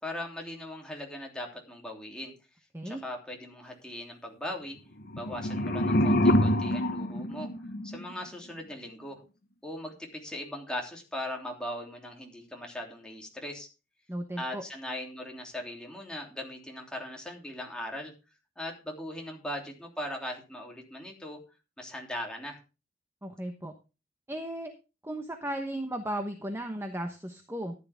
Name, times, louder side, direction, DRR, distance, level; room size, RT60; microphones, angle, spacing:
voice 1, 0.0-2.3 2.8-4.8 5.2-7.5 7.8-9.2 9.6-13.7 14.4-18.1 18.6-21.4 21.8-22.6, left 1 dB, 5° left, -1 dB, 3.0 m, -39 dB
sound 1, 5.0-8.1, equal, 55° left, 1.1 m, -26 dB
voice 2, 14.1-14.6 23.2-23.7 24.3-24.7 25.0-27.7, right 1 dB, 15° right, 5 dB, 1.0 m, -35 dB
14.0 x 9.7 x 3.5 m, 0.31 s
head